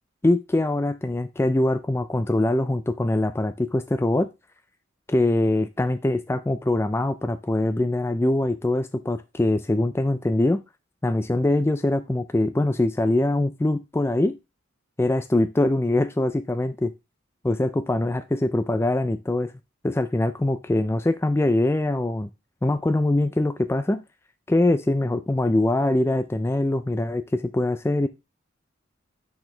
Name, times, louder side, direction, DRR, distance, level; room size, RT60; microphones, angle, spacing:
voice 1, 0.2-4.3 5.1-10.6 11.0-14.4 15.0-16.9 17.4-19.5 19.8-22.3 22.6-24.0 24.5-28.1, left 1 dB, 10° left, 10 dB, 0.3 m, -23 dB
10.5 x 4.3 x 3.2 m, 0.24 s
head